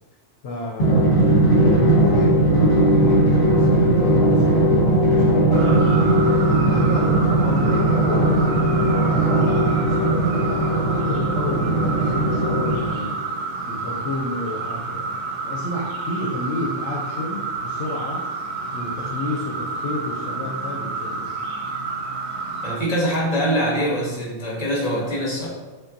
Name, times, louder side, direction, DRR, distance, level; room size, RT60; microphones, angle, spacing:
voice 1, 0.4-1.2 1.8-5.8 6.5-13.2 13.7-15.1 15.4-18.3 18.7-21.3, left 2 dB, 85° left, 0 dB, 0.9 m, -31 dB
Drum, 0.8-13.2, right 1 dB, 55° left, 1.3 m, -18 dB
sound 1, 5.5-22.8, right 3 dB, 65° right, 0.8 m, -30 dB
voice 2, 22.6-25.5, equal, 35° left, -4 dB, 1.1 m, -23 dB
5.2 x 2.2 x 2.6 m, 1.2 s
omnidirectional pair, 1.2 m